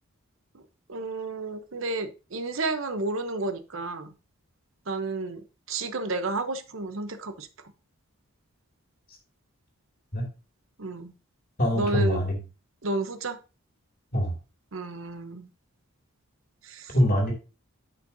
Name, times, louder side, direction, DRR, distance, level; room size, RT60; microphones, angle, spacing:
voice 1, 0.9-4.1 4.9-7.5 10.8-11.1 11.7-12.2 12.8-13.4 14.7-15.5 16.6-17.0, right 2 dB, 65° right, 9 dB, 0.9 m, -31 dB
voice 2, 11.6-12.3 14.1-14.3 16.9-17.3, equal, 40° left, 1 dB, 2.5 m, -23 dB
10.0 x 5.6 x 2.7 m, 0.30 s
head